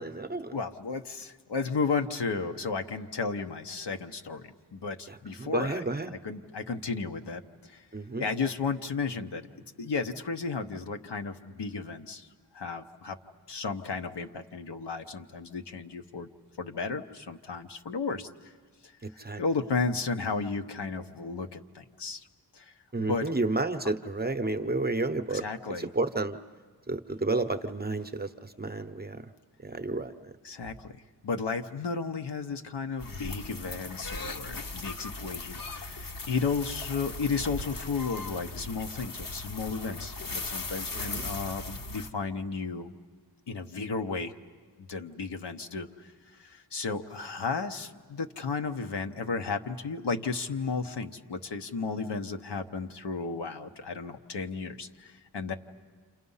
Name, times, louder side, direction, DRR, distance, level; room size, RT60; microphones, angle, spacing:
voice 1, 0.0-0.6 5.1-6.1 7.9-8.3 19.2-19.4 22.9-25.4 25.8-26.4 26.9-29.2 29.6-30.1 41.1-41.3, right 2 dB, 25° right, 7 dB, 0.7 m, -31 dB
voice 2, 0.5-7.8 8.2-9.4 9.8-12.3 12.5-13.2 13.5-16.3 16.6-18.3 19.4-22.3 22.5-22.7 23.0-23.3 25.3-25.9 30.4-31.0 31.2-42.9 43.5-44.3 44.8-45.9 46.4-55.5, left 4 dB, 80° left, 6 dB, 1.0 m, -33 dB
sound 1, 33.0-42.1, left 3 dB, 55° left, 0.9 m, -38 dB
29.5 x 27.5 x 5.6 m, 1.5 s
wide cardioid pair, 100°, 41 cm